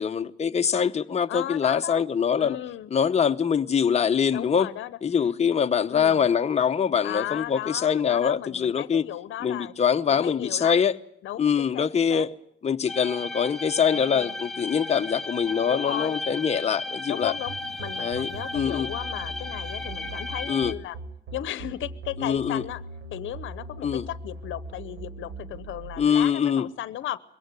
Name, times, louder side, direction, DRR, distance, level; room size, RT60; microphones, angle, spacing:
voice 1, 0.0-2.6 2.9-4.7 5.0-9.0 9.4-10.9 11.4-12.3 12.6-17.3 18.0-18.9 20.5-20.7 22.2-22.6 23.8-24.1 26.0-26.7, left 7 dB, 35° left, 0.9 m, -24 dB
voice 2, 1.3-2.0 2.4-2.9 4.3-5.0 5.9-6.3 7.0-9.7 10.1-10.8 11.2-12.3 13.9-14.4 15.7-16.2 17.1-21.0 21.3-22.8 23.1-27.2, left 13 dB, 75° left, 0.9 m, -35 dB
sound 1, 12.9-20.7, left 2 dB, ahead, 2.0 m, -35 dB
sound 2, 17.2-26.1, right 2 dB, 75° right, 5.5 m, -40 dB
22.0 x 17.0 x 9.8 m
cardioid pair, 90°, 20 cm